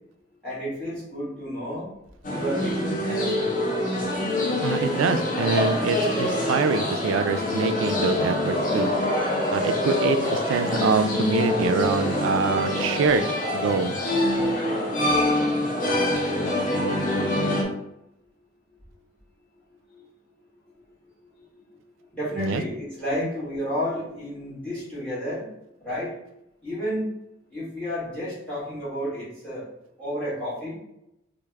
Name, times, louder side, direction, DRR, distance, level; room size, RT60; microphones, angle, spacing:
voice 1, 0.4-1.9 2.3-3.5 16.5-16.9 19.9-20.1 21.4-21.5 22.1-25.5 25.8-26.1 26.6-27.1 27.5-29.7 30.0-30.8, equal, 5° left, -8 dB, 1.4 m, -31 dB
sound 1, 2.2-17.6, left 1 dB, 40° left, 0.6 m, -25 dB
voice 2, 4.6-8.9 9.5-13.3 13.5-14.0 22.4-22.6, right 5 dB, 80° right, 9 dB, 0.3 m, -25 dB
3.3 x 2.0 x 3.3 m, 0.82 s
head